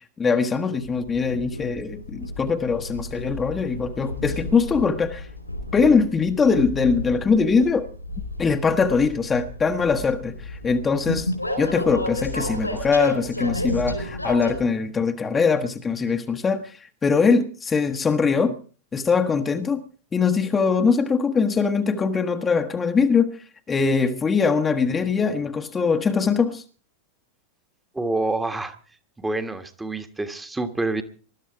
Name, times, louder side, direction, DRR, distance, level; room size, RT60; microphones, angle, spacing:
voice 1, 0.2-5.3 5.7-7.9 8.4-11.3 11.6-18.5 18.9-19.8 20.1-23.3 23.7-26.6, left 5 dB, 20° left, 1.2 m, -22 dB
Train, 0.8-14.6, left 1 dB, 85° left, 4.7 m, -32 dB
voice 2, 27.9-28.7 29.2-31.0, right 2 dB, 10° right, 1.5 m, -27 dB
20.5 x 12.5 x 4.8 m
figure-of-eight pair, 90°, 0 cm